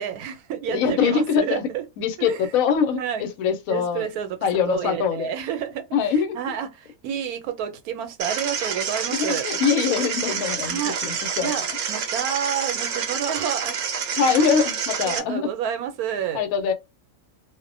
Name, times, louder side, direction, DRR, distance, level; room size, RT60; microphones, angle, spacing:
voice 1, 0.0-1.8 2.2-2.5 2.9-3.2 3.7-4.4 4.7-9.5 10.6-11.1 11.4-13.8 14.2-14.5 15.0-16.4, right 9 dB, 90° right, 1.1 m, -30 dB
voice 2, 0.7-1.6 2.0-4.1 4.4-5.3 5.9-6.4 9.1-11.5 14.2-15.5 16.3-16.7, left 6 dB, 75° left, 1.0 m, -23 dB
sound 1, 8.2-15.2, right 6 dB, 70° right, 0.9 m, -28 dB
2.4 x 2.1 x 2.5 m
omnidirectional pair, 1.5 m